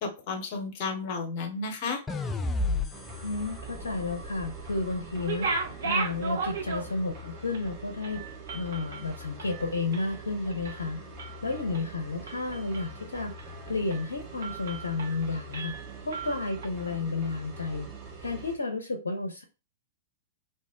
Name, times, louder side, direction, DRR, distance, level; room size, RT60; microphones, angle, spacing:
voice 1, 0.0-2.0, left 4 dB, 45° left, 5 dB, 0.9 m, -32 dB
sound 1, 2.1-5.3, left 3 dB, 15° left, 0.3 m, -33 dB
sound 2, 2.9-18.6, right 2 dB, 30° right, 1.0 m, -44 dB
voice 2, 3.2-11.0 11.4-13.3 13.7-17.9 18.2-19.4, left 3 dB, 75° left, 5 dB, 0.5 m, -32 dB
sound 3, 5.1-7.2 7.5-7.7 8.0-10.2 10.5-10.8 11.2-11.8 12.3-13.0 13.4-13.5 13.9-14.1 14.4-15.2 15.5-16.7, right 4 dB, 65° right, 0.6 m, -35 dB
2.7 x 2.1 x 3.5 m, 0.30 s
figure-of-eight pair, 105°, 0 cm